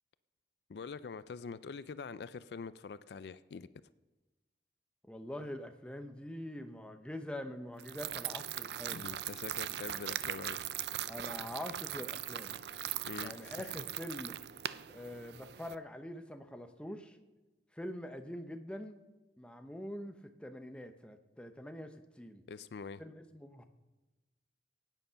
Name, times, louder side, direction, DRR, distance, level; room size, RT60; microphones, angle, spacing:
voice 1, 0.7-3.7 8.9-10.6 13.1-13.8 22.5-23.0, left 5 dB, 65° left, 16 dB, 0.4 m, -45 dB
voice 2, 5.0-9.1 11.1-12.6 13.2-14.4 14.9-17.2 17.7-19.0 19.4-22.4 23.0-23.6, left 1 dB, 5° left, 7 dB, 0.7 m, -44 dB
sound 1, 7.8-15.7, right 11 dB, 65° right, 0.4 m, -40 dB
16.5 x 9.2 x 5.7 m, 1.2 s
head